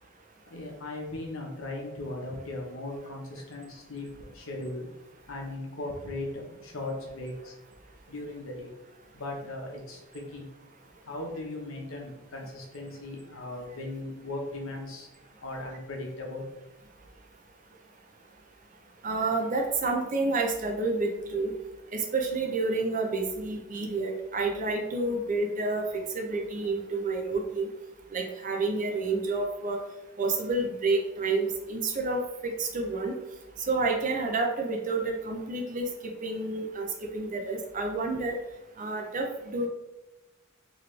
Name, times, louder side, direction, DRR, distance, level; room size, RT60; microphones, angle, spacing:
voice 1, 0.5-4.9 5.3-7.5 8.1-8.7 9.1-10.5 11.0-15.1 15.4-16.4, left 2 dB, 70° left, 0 dB, 1.0 m, -38 dB
voice 2, 19.0-21.5 21.9-27.7 28.1-29.8 30.2-33.1 33.7-36.9 37.1-38.3 38.8-39.7, right 3 dB, 40° right, 2 dB, 0.6 m, -29 dB
4.0 x 3.1 x 3.2 m, 1.0 s
head